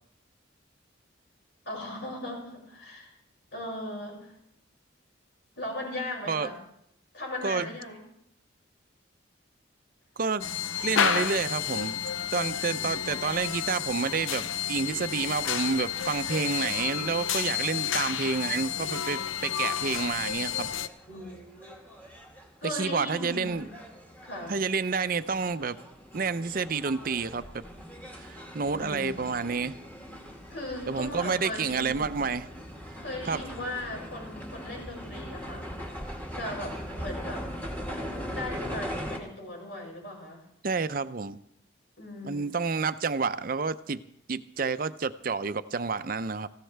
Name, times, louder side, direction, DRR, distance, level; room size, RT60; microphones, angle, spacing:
voice 1, 1.6-3.2 3.5-4.3 5.6-6.6 7.1-8.0 12.6-13.1 21.1-21.7 22.6-23.8 24.2-24.6 28.7-29.3 30.5-32.2 33.0-35.9 36.3-37.5 38.3-40.4 42.0-42.5, left 1 dB, 60° left, -2 dB, 6.2 m, -38 dB
voice 2, 10.2-10.5 10.8-12.0 12.3-20.7 22.6-23.6 24.5-25.8 26.1-27.6 28.2-29.7 30.9-32.5 33.3-33.4 40.6-41.4 42.2-44.0 44.3-46.5, right 4 dB, 45° right, 12 dB, 0.5 m, -29 dB
sound 1, 10.4-20.9, left 8 dB, 85° left, 0.7 m, -31 dB
sound 2, 20.7-39.2, equal, 10° left, 2.0 m, -41 dB
19.5 x 15.5 x 3.4 m, 0.75 s
head